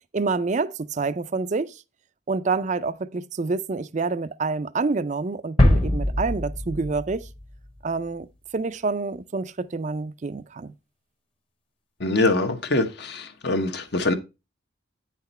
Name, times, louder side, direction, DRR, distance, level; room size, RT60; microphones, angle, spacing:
voice 1, 0.1-1.8 2.3-7.3 7.8-8.3 8.5-10.7, right 4 dB, 35° right, 0.4 m, -27 dB
sound 1, 5.6-8.1, left 1 dB, 30° left, 1.1 m, -22 dB
voice 2, 12.0-14.1, left 2 dB, 55° left, 1.1 m, -24 dB
9.0 x 5.9 x 4.2 m
head